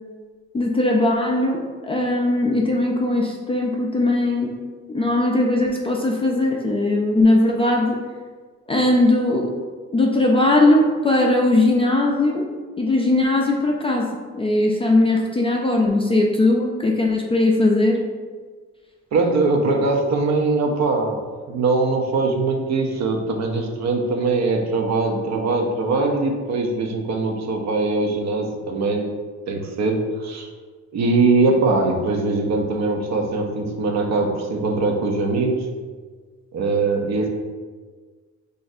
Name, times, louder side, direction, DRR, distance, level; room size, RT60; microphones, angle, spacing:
voice 1, 0.5-4.6 4.9-8.0 8.7-9.6 9.9-12.5 12.8-14.1 14.4-18.0, left 2 dB, 20° left, -1 dB, 0.3 m, -19 dB
voice 2, 19.1-21.2 21.5-29.1 29.5-30.5 30.9-35.7 36.5-37.3, right 3 dB, 60° right, 3 dB, 0.6 m, -21 dB
2.5 x 2.4 x 4.0 m, 1.5 s
cardioid pair, 90°, 30 cm